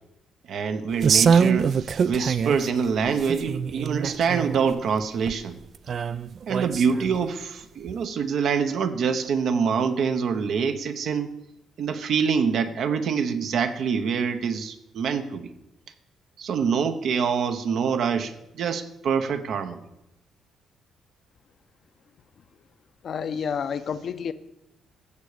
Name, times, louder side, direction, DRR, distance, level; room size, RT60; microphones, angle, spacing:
voice 1, 0.5-5.6 6.5-11.3 11.8-15.5 16.4-19.8, right 6 dB, 70° right, 8 dB, 0.9 m, -25 dB
sound 1, 1.0-2.7 3.1-4.7 5.3-5.4 5.9-7.2 7.9-8.0, right 6 dB, 55° right, 0.3 m, -24 dB
voice 2, 23.0-24.3, left 7 dB, 55° left, 11 dB, 0.7 m, -29 dB
15.0 x 6.9 x 4.9 m, 0.89 s
cardioid pair, 90°, 0 cm